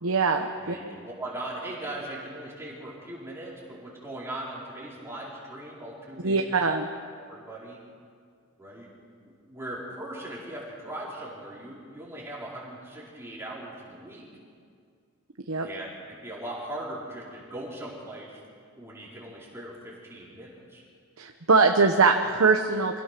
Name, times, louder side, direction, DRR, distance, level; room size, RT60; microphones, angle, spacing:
voice 1, 0.0-0.8 6.2-6.9 15.5-15.7 21.2-23.0, right 4 dB, 75° right, 4 dB, 1.0 m, -22 dB
voice 2, 0.6-6.5 7.3-7.8 8.6-8.9 9.2-14.3 15.6-18.4 18.8-20.8, right 1 dB, 10° right, -6 dB, 4.6 m, -39 dB
26.0 x 17.0 x 6.1 m, 2.2 s
head